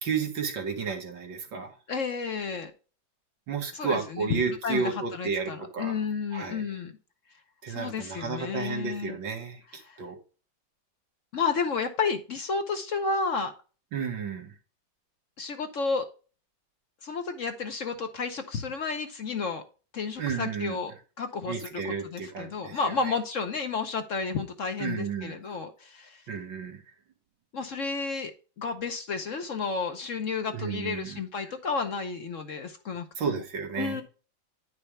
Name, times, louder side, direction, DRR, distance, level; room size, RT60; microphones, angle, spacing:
voice 1, 0.0-1.7 3.5-6.0 6.3-6.7 7.6-10.2 13.9-14.5 20.2-20.8 21.5-22.8 23.0-23.1 24.8-25.3 26.3-26.8 30.5-31.2 33.2-34.0, right 6 dB, 90° right, 3 dB, 2.4 m, -32 dB
voice 2, 1.9-2.7 3.7-6.9 7.7-9.2 9.8-10.0 11.3-13.5 15.4-16.0 17.0-19.6 19.9-20.9 21.2-26.2 27.5-28.3 28.6-33.3 33.8-34.0, left 5 dB, 55° left, 7 dB, 1.0 m, -31 dB
10.0 x 5.6 x 3.3 m, 0.36 s
omnidirectional pair, 2.0 m